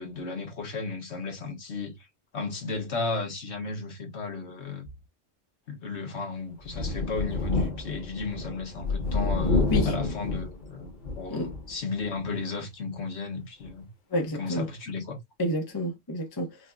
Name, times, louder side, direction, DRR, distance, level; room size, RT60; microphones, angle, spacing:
voice 1, 0.0-1.9 2.3-4.9 5.7-13.9 14.3-15.2, left 4 dB, 60° left, 1.4 m, -34 dB
Thunder, 6.6-11.8 12.2-12.3 13.6-13.7, left 3 dB, 40° left, 1.2 m, -29 dB
voice 2, 14.1-14.7 15.4-16.6, equal, 20° left, 0.9 m, -29 dB
5.0 x 2.4 x 2.2 m
omnidirectional pair, 1.3 m